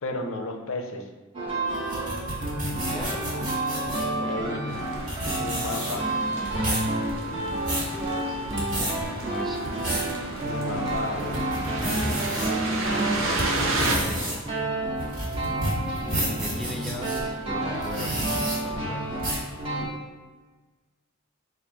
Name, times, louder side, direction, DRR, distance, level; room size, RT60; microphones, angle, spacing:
voice 1, 0.0-1.1 4.2-4.6 5.4-6.1 10.4-11.4, left 2 dB, 75° left, 4 dB, 0.6 m, -32 dB
sound 1, 1.3-19.8, right 1 dB, 25° right, 1.1 m, -30 dB
sound 2, 1.7-4.1 4.8-4.9 5.1-6.1 6.4-6.9 7.4-7.9 8.4-8.9 9.5-10.1 10.6-10.7 11.2-12.5 13.0-17.2 17.7-18.6 19.2-19.5, right 1 dB, 40° right, 1.4 m, -30 dB
voice 2, 2.7-3.4 4.0-4.8 9.2-9.7 11.8-14.4 16.4-19.3, left 1 dB, ahead, -1 dB, 0.3 m, -40 dB
sound 3, 4.7-14.0, right 2 dB, 70° right, 0.6 m, -33 dB
4.1 x 2.6 x 4.6 m, 1.3 s
head